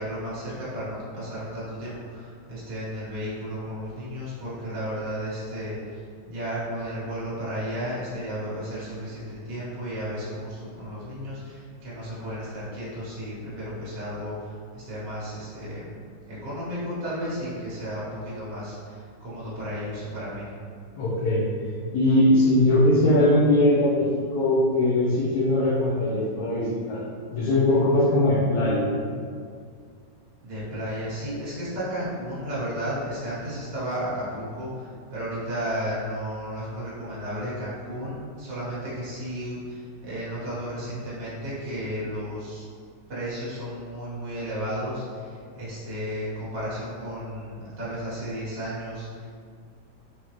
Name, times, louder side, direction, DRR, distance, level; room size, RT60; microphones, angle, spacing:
voice 1, 0.0-15.9 16.2-20.5 30.4-42.6 43.1-49.3, equal, 75° right, -9 dB, 1.9 m, -33 dB
voice 2, 20.9-21.4 21.9-27.0 27.3-28.9, left 1 dB, 65° left, -8 dB, 1.2 m, -21 dB
4.8 x 2.8 x 3.0 m, 2.1 s
omnidirectional pair, 1.9 m